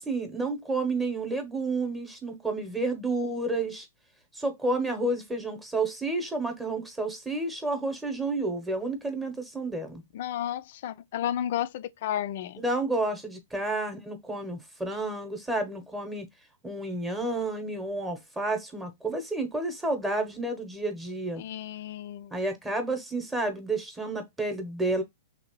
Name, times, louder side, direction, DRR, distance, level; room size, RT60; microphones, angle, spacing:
voice 1, 0.0-3.9 4.3-10.0 12.6-16.3 16.6-21.4 22.3-25.0, right 2 dB, 10° right, 0.8 m, -30 dB
voice 2, 10.1-12.6 21.4-22.3, left 11 dB, 55° left, 0.3 m, -32 dB
2.9 x 2.8 x 2.9 m
hypercardioid pair, 130°, 0 cm